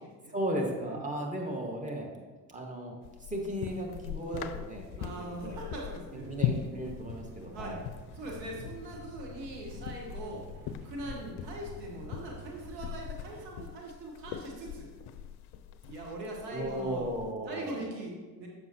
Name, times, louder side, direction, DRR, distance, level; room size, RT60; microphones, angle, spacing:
voice 1, 0.3-2.1 2.5-3.0 3.3-5.6 6.1-7.8 11.0-11.2 16.5-17.8, right 1 dB, 15° right, 0 dB, 1.4 m, -35 dB
sound 1, 3.0-17.3, left 9 dB, 55° left, 0.5 m, -41 dB
voice 2, 5.0-6.3 7.5-7.8 8.2-10.4 10.8-14.9 15.8-17.1 17.4-18.5, right 1 dB, 80° right, -1 dB, 1.2 m, -41 dB
sound 2, 6.0-13.5, right 3 dB, 50° right, 0.6 m, -50 dB
7.0 x 6.1 x 2.8 m, 1.3 s
hypercardioid pair, 50°, 49 cm